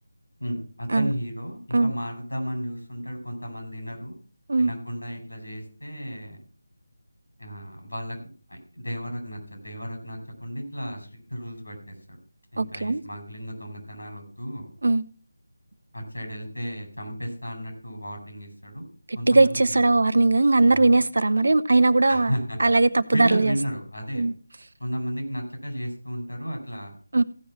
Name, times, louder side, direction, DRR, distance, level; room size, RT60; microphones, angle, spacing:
voice 1, 0.4-4.2 4.6-6.4 7.4-8.2 8.5-12.2 12.5-14.7 15.9-18.8 19.1-20.0 20.7-21.0 22.1-22.6 23.1-24.2 24.8-27.0, equal, 85° left, 5.0 m, -33 dB
voice 2, 12.6-13.0 14.8-15.0 19.1-22.3 22.6-23.6 24.2-24.3 27.1-27.2, right 2 dB, 65° right, 0.7 m, -19 dB
15.0 x 5.5 x 5.8 m
figure-of-eight pair, 160°, 0 cm